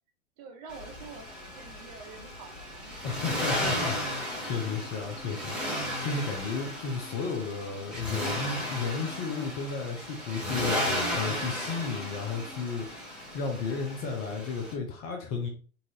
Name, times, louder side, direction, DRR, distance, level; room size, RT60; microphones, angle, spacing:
voice 1, 0.4-3.0, right 5 dB, 30° right, 4 dB, 0.5 m, -47 dB
Accelerating revving vroom, 0.7-14.7, left 1 dB, ahead, 0.9 m, -34 dB
voice 2, 3.0-5.6 6.0-10.8 11.1-12.9 13.1-15.5, left 5 dB, 20° left, 2 dB, 0.4 m, -33 dB
3.9 x 2.4 x 2.8 m, 0.40 s
figure-of-eight pair, 105°, 41 cm